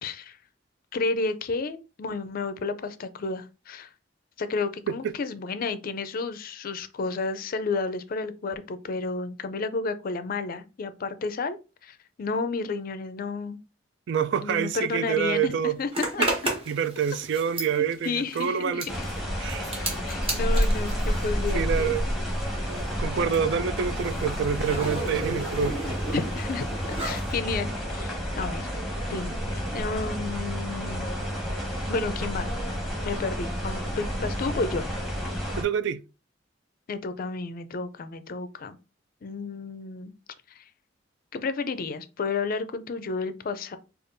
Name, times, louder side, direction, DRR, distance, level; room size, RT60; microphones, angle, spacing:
voice 1, 0.0-0.4 0.9-3.9 4.4-11.6 11.8-13.6 14.4-16.3 17.8-19.1 19.8-21.9 26.1-28.7 29.1-29.4 29.7-31.1 31.9-32.5 33.0-34.9 36.9-38.8 39.2-40.1 40.5-40.7 41.3-43.8, left 4 dB, 50° left, 0.4 m, -31 dB
voice 2, 14.1-15.7 16.7-18.9 19.4-19.7 21.5-22.0 22.7-25.8 35.6-36.0, right 7 dB, 65° right, 0.3 m, -27 dB
Zipper (clothing), 15.9-22.1 22.4-27.3, right 1 dB, 30° right, 1.1 m, -34 dB
sound 1, 18.9-35.6, equal, ahead, 1.0 m, -30 dB
5.1 x 2.4 x 2.6 m
head